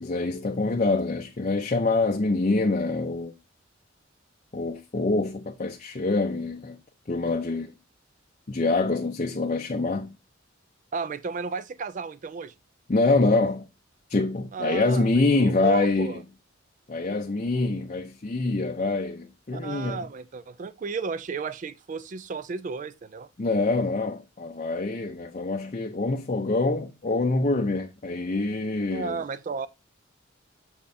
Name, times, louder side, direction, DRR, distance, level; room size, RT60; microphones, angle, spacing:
voice 1, 0.0-3.3 4.5-6.8 7.1-7.7 8.5-10.1 12.9-13.7 14.1-16.2 16.9-20.0 23.4-29.2, left 3 dB, 35° left, 0.5 m, -25 dB
voice 2, 10.9-12.5 14.5-16.2 19.5-23.3 28.9-29.7, right 5 dB, 40° right, 0.3 m, -33 dB
6.7 x 5.3 x 2.6 m
head